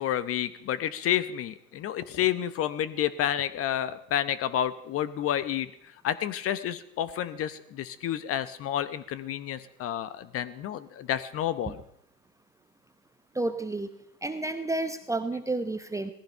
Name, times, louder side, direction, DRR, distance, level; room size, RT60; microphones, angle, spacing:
voice 1, 0.0-11.8, left 11 dB, 30° left, 15 dB, 0.9 m, -30 dB
voice 2, 13.3-13.9 14.2-16.1, right 2 dB, 5° right, 9 dB, 0.8 m, -30 dB
18.0 x 14.5 x 5.6 m, 0.72 s
hypercardioid pair, 110°, 49 cm